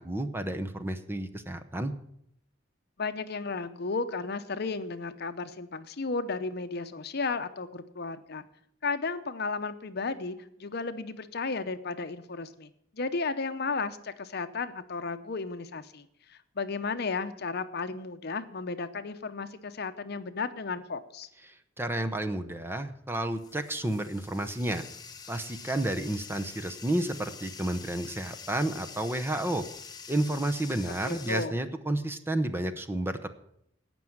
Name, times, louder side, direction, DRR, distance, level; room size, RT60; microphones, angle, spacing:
voice 1, 0.0-1.9 21.5-24.8 25.3-29.6 30.1-33.3, right 1 dB, 10° right, 7 dB, 0.8 m, -31 dB
voice 2, 3.0-8.4 8.8-21.3 30.9-31.5, left 4 dB, 55° left, 10 dB, 0.8 m, -34 dB
Bathtub (filling or washing), 22.3-31.5, left 6 dB, 20° left, 1.0 m, -46 dB
17.5 x 6.2 x 7.2 m, 0.72 s
head